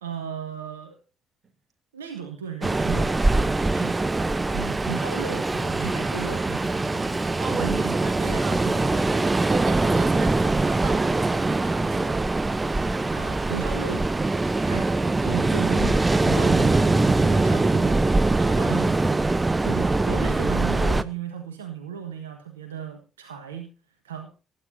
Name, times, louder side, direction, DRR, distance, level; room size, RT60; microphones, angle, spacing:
voice 1, 0.0-1.0 1.9-3.2 3.7-4.0 4.4-7.2 7.5-9.2 13.1-14.1 14.6-19.2 19.6-23.7 24.0-24.3, right 7 dB, 80° right, 1.4 m, -36 dB
Ocean, 2.6-21.0, right 2 dB, 20° right, 0.7 m, -23 dB
voice 2, 7.4-8.6 9.5-12.3 18.4-19.1, right 6 dB, 45° right, 2.9 m, -36 dB
19.0 x 10.5 x 2.7 m
figure-of-eight pair, 45°, 0 cm